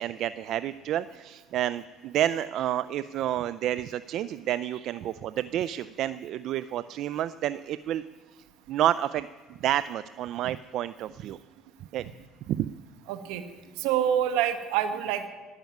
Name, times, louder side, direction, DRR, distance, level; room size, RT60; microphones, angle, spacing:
voice 1, 0.0-8.0 8.7-9.3 9.6-11.4 11.9-12.1 12.5-12.7, right 12 dB, 65° right, 15 dB, 0.4 m, -29 dB
voice 2, 13.1-13.4 13.8-15.3, right 10 dB, 85° right, 9 dB, 1.3 m, -26 dB
12.5 x 10.5 x 9.3 m, 1.3 s
supercardioid pair, 100°, 0 cm